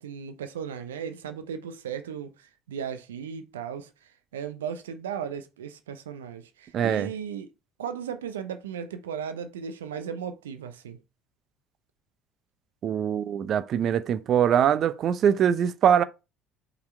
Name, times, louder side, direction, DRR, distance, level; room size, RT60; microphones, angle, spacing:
voice 1, 0.0-3.9 4.3-7.5 7.8-11.0, right 7 dB, 80° right, 0.8 m, -36 dB
voice 2, 6.7-7.1 12.8-16.0, right 9 dB, 50° right, 0.6 m, -23 dB
5.7 x 4.1 x 4.3 m
hypercardioid pair, 60°, 0 cm